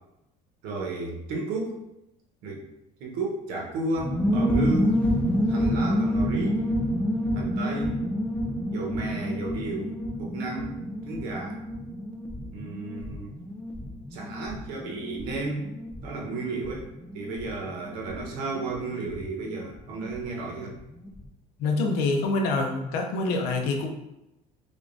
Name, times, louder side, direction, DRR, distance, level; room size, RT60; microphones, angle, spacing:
voice 1, 0.6-1.8 2.4-2.7 3.0-5.0 5.5-6.6 7.3-8.0 8.7-11.6 12.5-13.3 14.1-15.7 16.0-20.7, right 3 dB, 85° right, -1 dB, 1.0 m, -33 dB
sound 1, 4.0-20.3 20.5-20.6 20.8-21.2, equal, 5° left, 0.4 m, -29 dB
voice 2, 21.6-23.9, left 3 dB, 75° left, 3 dB, 0.7 m, -26 dB
3.6 x 3.5 x 2.5 m, 0.88 s
cardioid pair, 150°, 16 cm